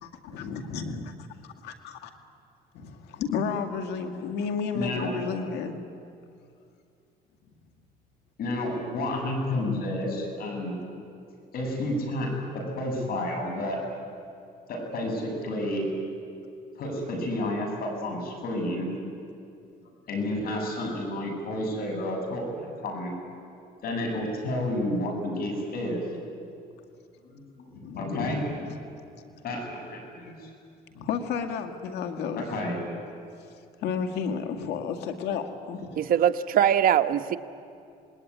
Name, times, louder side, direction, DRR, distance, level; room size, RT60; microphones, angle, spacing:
voice 1, 0.0-2.1 2.7-5.7 27.7-29.0 30.9-32.5 33.8-36.1, left 6 dB, 85° left, 6 dB, 2.2 m, -32 dB
voice 2, 4.7-5.1 8.4-10.8 11.5-13.8 14.7-15.8 16.8-18.9 20.1-23.1 23.8-26.1 27.2-27.7 28.0-28.4 29.4-30.5 32.4-32.8, left 1 dB, 60° left, 2 dB, 7.3 m, -30 dB
voice 3, 36.0-37.4, right 9 dB, 60° right, 8 dB, 1.1 m, -22 dB
27.0 x 20.0 x 9.7 m, 2.5 s
cardioid pair, 110°, 17 cm